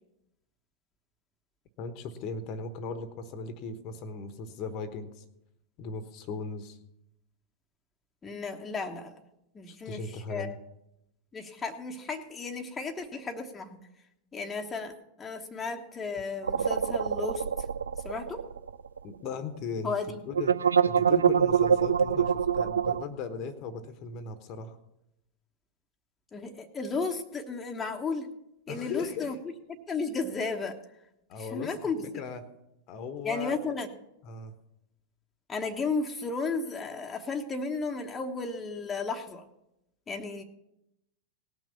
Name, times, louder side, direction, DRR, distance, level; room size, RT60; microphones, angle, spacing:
voice 1, 1.8-5.2 5.8-6.8 9.7-10.6 19.0-19.9 20.2-20.5 20.8-24.8 28.7-29.4 31.3-32.4 32.9-33.6 34.2-34.5, left 4 dB, 40° left, 11 dB, 1.2 m, -38 dB
voice 2, 8.2-9.2 9.5-10.6 11.3-13.8 14.3-14.9 15.2-17.4 18.0-18.4 19.8-20.1 26.3-28.3 28.7-29.3 29.9-30.8 31.4-32.0 33.2-33.9 35.5-39.4 40.1-40.4, left 4 dB, 15° left, 3 dB, 1.1 m, -34 dB
sound 1, 16.4-19.0 19.3-19.4 20.3-23.0, right 7 dB, 70° right, 0.4 m, -25 dB
18.5 x 6.1 x 7.0 m, 0.86 s
figure-of-eight pair, 90°, 0 cm